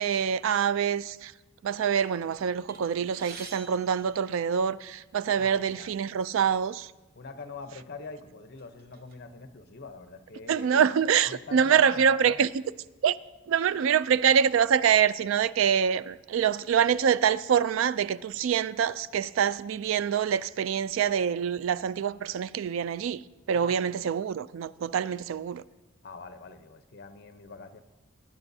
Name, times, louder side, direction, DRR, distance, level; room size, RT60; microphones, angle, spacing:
voice 1, 0.0-1.3 1.6-6.9 10.5-12.5 13.0-13.2 13.5-25.6, right 8 dB, 65° right, 0.3 m, -25 dB
sound 1, 2.7-5.0 5.9-6.0 6.3-6.5 7.3-7.5 8.0-9.1, right 4 dB, 45° right, 1.0 m, -48 dB
voice 2, 5.4-5.9 7.1-10.8 11.2-12.4 23.5-23.8 26.0-27.8, left 4 dB, 50° left, 0.7 m, -43 dB
19.5 x 10.0 x 2.7 m
head